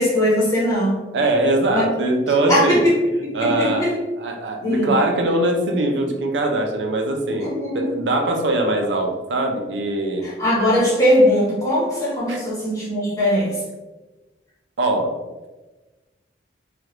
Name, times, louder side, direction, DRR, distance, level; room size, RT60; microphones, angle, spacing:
voice 1, 0.0-1.0 1.7-1.9 2.5-2.9 3.4-3.9 4.6-4.9 7.4-7.9 10.2-13.6, equal, 20° left, -7 dB, 1.0 m, -20 dB
voice 2, 1.1-2.9 3.3-3.9 4.2-10.3 12.3-12.4 14.8-15.1, right 1 dB, 90° right, 3 dB, 0.5 m, -21 dB
3.3 x 2.3 x 2.9 m, 1.2 s
head